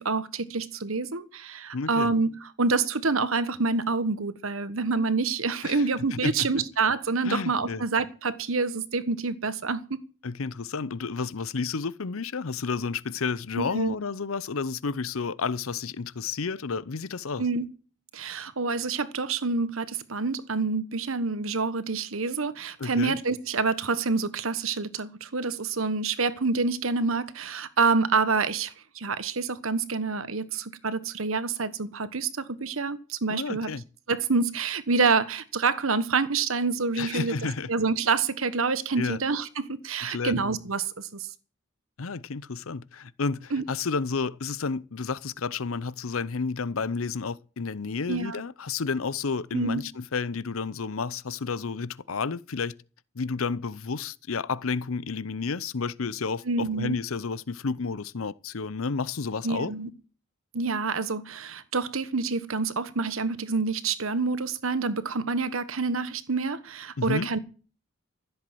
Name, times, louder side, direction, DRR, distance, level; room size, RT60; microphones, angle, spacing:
voice 1, 0.0-10.0 13.5-13.9 17.4-17.7 18.1-33.7 34.1-37.3 37.7-41.3 43.5-43.6 48.1-48.4 49.5-49.8 56.4-57.0 59.4-59.9 60.5-67.4, right 4 dB, 85° right, 1.3 m, -27 dB
voice 2, 1.7-2.1 5.6-5.8 6.1-6.5 7.2-7.8 10.2-17.4 22.8-23.1 33.3-33.8 37.0-37.7 39.0-39.2 40.1-40.4 42.0-52.7 53.2-59.7 67.0-67.3, left 4 dB, 85° left, 0.7 m, -31 dB
15.0 x 8.0 x 7.7 m
head